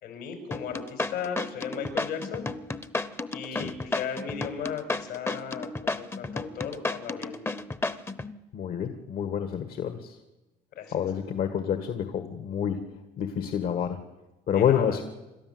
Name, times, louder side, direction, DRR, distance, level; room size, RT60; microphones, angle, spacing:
voice 1, 0.0-2.5 3.3-7.4 10.8-11.0 14.5-15.0, left 7 dB, 85° left, 5 dB, 5.6 m, -36 dB
sound 1, 0.5-8.3, left 2 dB, 15° left, 0.9 m, -32 dB
voice 2, 8.5-10.2 10.9-12.8 13.2-14.0 14.5-15.0, left 8 dB, 60° left, 8 dB, 1.6 m, -28 dB
28.0 x 12.5 x 7.8 m, 1.1 s
cardioid pair, 110°, 17 cm